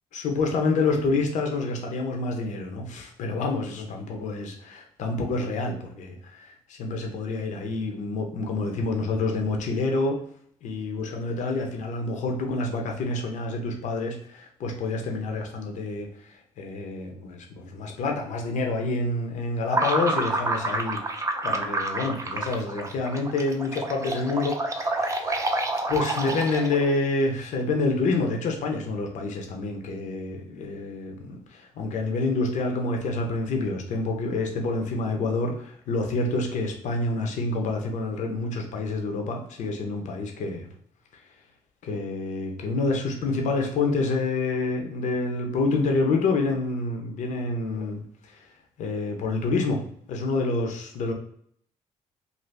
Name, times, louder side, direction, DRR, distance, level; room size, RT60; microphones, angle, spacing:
voice 1, 0.1-10.2 10.6-16.1 16.6-21.0 21.4-25.4 25.9-40.7 41.8-48.0 48.8-49.8 50.1-51.1, left 3 dB, 70° left, 2 dB, 0.6 m, -28 dB
sound 1, 19.7-26.9, right 2 dB, 25° right, 0.5 m, -28 dB
2.6 x 2.4 x 3.3 m, 0.63 s
cardioid pair, 80°, 13 cm